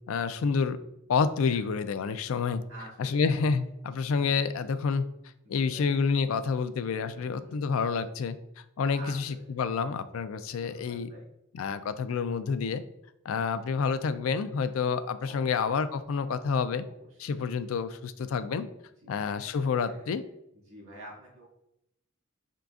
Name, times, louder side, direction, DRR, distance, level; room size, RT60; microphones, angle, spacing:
voice 1, 0.1-0.8 1.1-2.6 3.0-5.0 5.5-8.4 8.8-11.1 11.5-12.8 13.3-16.8 17.2-18.7 19.1-20.2, left 5 dB, 85° left, 11 dB, 0.4 m, -28 dB
voice 2, 2.7-3.7 5.6-5.9 7.1-7.6 8.9-9.5 10.5-11.3 15.2-15.5 16.8-17.3 19.0-19.1 19.8-20.1 20.5-21.5, right 1 dB, 85° right, -2 dB, 1.6 m, -49 dB
5.6 x 3.8 x 2.4 m, 0.82 s
head